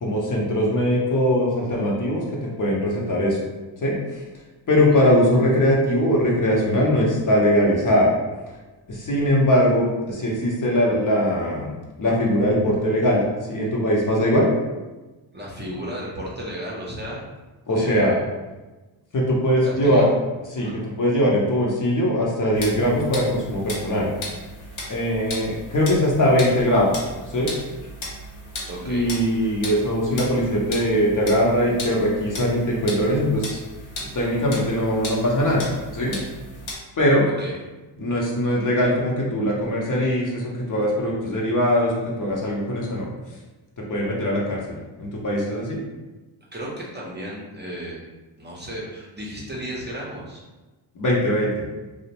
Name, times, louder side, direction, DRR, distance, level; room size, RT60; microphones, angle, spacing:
voice 1, 0.0-3.4 3.8-4.2 4.7-8.1 8.9-11.7 12.0-14.5 17.7-18.1 19.1-20.1 20.5-24.1 24.9-27.0 27.3-27.5 28.8-33.6 34.1-36.2 37.0-37.2 38.0-43.1 43.8-45.8 50.9-51.6, equal, 40° left, -3 dB, 0.7 m, -21 dB
voice 2, 15.3-17.2 17.7-18.2 19.6-20.0 20.6-20.8 28.7-29.1 37.2-37.5 46.5-48.0 48.4-50.4, equal, 20° right, -5 dB, 0.6 m, -34 dB
sound 1, 22.5-36.7, left 1 dB, 75° left, 0.9 m, -36 dB
2.5 x 2.0 x 2.9 m, 1.2 s
cardioid pair, 60°, 48 cm